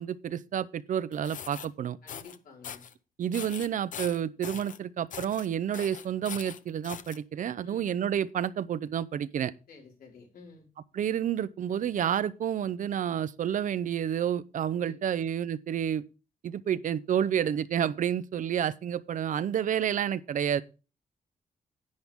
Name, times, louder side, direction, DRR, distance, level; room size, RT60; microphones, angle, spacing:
voice 1, 0.0-2.0 3.2-9.5 10.9-16.0 16.4-20.6, right 9 dB, 60° right, 0.6 m, -30 dB
sound 1, 1.1-1.7 2.1-2.4 2.6-2.9 3.3-4.8 5.1-5.5 5.7-7.2, left 8 dB, 60° left, 0.7 m, -41 dB
voice 2, 2.0-2.8 7.6-7.9 9.7-10.7 14.7-15.2, left 4 dB, 80° left, 5.2 m, -52 dB
10.5 x 9.7 x 3.6 m
wide cardioid pair, 165°, 15 cm